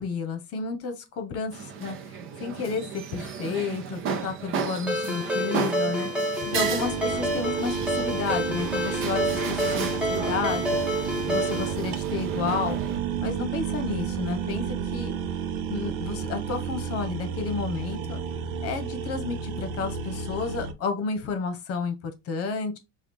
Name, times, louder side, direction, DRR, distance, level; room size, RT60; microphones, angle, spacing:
voice 1, 0.0-6.1 6.4-12.8 13.2-15.1 15.7-18.2 18.6-22.8, left 5 dB, 40° left, 1.1 m, -31 dB
sound 1, 1.5-13.0, right 6 dB, 35° right, 0.7 m, -35 dB
Ringtone, 4.9-11.7, equal, 5° right, 1.0 m, -28 dB
sound 2, 6.5-20.7, right 8 dB, 85° right, 0.8 m, -31 dB
5.7 x 2.4 x 3.2 m
cardioid pair, 160°, 37 cm